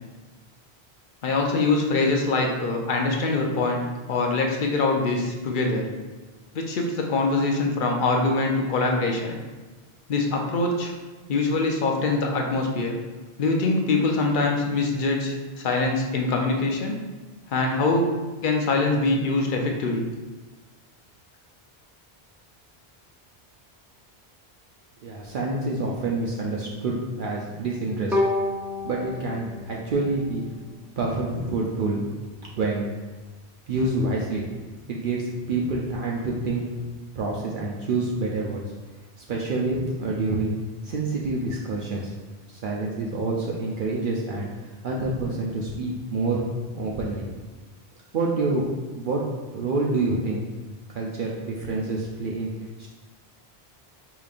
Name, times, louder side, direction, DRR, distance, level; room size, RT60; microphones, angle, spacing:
voice 1, 1.2-3.8 4.1-5.9 6.5-9.4 10.1-10.9 11.3-12.9 13.4-16.9 17.5-18.1 18.4-20.1, left 3 dB, 55° left, 1 dB, 0.7 m, -23 dB
voice 2, 25.0-28.2 28.8-30.4 31.0-32.0 32.5-32.9 33.7-34.4 34.9-36.6 37.2-38.6 39.2-40.5 40.8-42.1 42.5-44.5 44.8-46.4 46.7-47.3 48.1-48.6 48.9-49.3 49.5-50.4 50.9-52.5 52.8-52.9, right 3 dB, 60° right, -3 dB, 0.6 m, -27 dB
Bowed string instrument, 28.1-31.2, left 2 dB, ahead, 0.3 m, -30 dB
5.0 x 2.9 x 2.4 m, 1.2 s
omnidirectional pair, 1.1 m